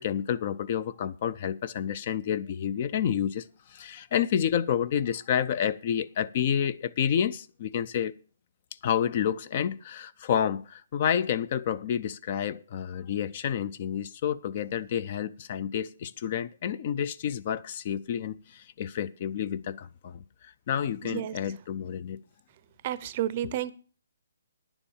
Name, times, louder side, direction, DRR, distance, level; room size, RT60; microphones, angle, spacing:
voice 1, 0.0-8.1 8.8-22.2, left 9 dB, 35° left, 0.4 m, -29 dB
voice 2, 21.0-21.4 22.8-23.7, right 12 dB, 30° right, 0.6 m, -31 dB
10.0 x 7.1 x 7.1 m
hypercardioid pair, 165°, 0 cm